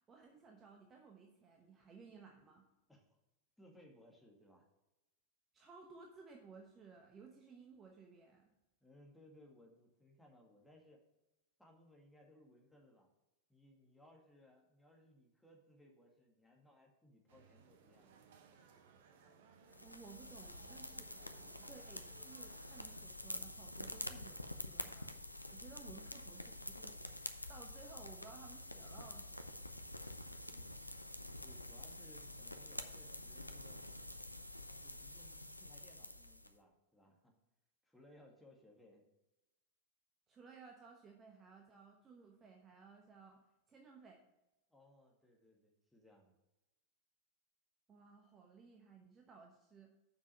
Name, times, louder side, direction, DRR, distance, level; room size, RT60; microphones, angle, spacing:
voice 1, 0.1-2.6 5.5-8.5 19.8-21.1 21.4-25.1 25.5-27.0 27.5-29.6 40.3-44.2 47.9-49.9, right 5 dB, 25° right, 2 dB, 1.0 m, -58 dB
voice 2, 3.6-4.6 8.8-11.0 11.6-13.1 13.5-18.3 31.4-33.8 34.8-37.3 37.8-39.1 44.7-46.4, left 1 dB, 5° left, -1 dB, 2.0 m, -64 dB
sound 1, 17.3-23.0, right 6 dB, 55° right, 1.0 m, -63 dB
sound 2, 19.7-36.5, left 1 dB, 85° left, 0.5 m, -48 dB
7.2 x 6.0 x 5.3 m, 0.95 s
figure-of-eight pair, 90°, 0 cm